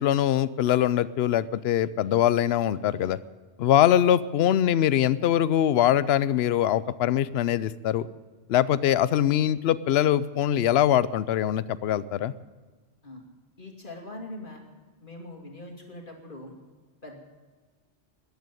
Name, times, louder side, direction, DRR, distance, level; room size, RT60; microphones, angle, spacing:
voice 1, 0.0-3.2 3.6-8.1 8.5-12.3, left 11 dB, 70° left, 17 dB, 0.8 m, -23 dB
voice 2, 13.6-14.6 15.0-16.5 17.0-17.2, left 1 dB, 50° left, 1 dB, 2.5 m, -42 dB
14.0 x 10.5 x 9.2 m, 1.4 s
omnidirectional pair, 1.1 m